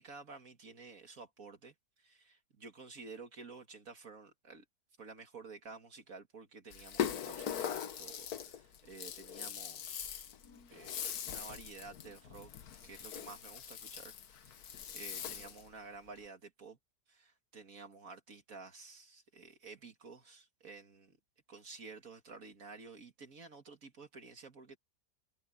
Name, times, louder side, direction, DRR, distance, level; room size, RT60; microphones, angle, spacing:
voice 1, 0.0-4.6 5.0-10.0 10.7-12.5 12.8-16.8 17.1-21.2 21.5-24.8, right 4 dB, 65° right, 2.3 m, -52 dB
Rattle (instrument), 6.7-15.7, left 9 dB, 85° left, 1.6 m, -41 dB
omnidirectional pair, 1.6 m